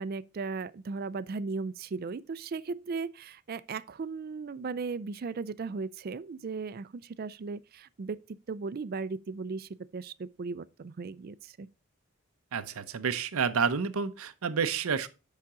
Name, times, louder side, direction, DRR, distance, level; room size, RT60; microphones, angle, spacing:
voice 1, 0.0-8.2 8.5-11.7, right 4 dB, 45° right, 0.4 m, -37 dB
voice 2, 12.5-15.1, right 6 dB, 85° right, 0.6 m, -29 dB
8.5 x 5.8 x 3.7 m
head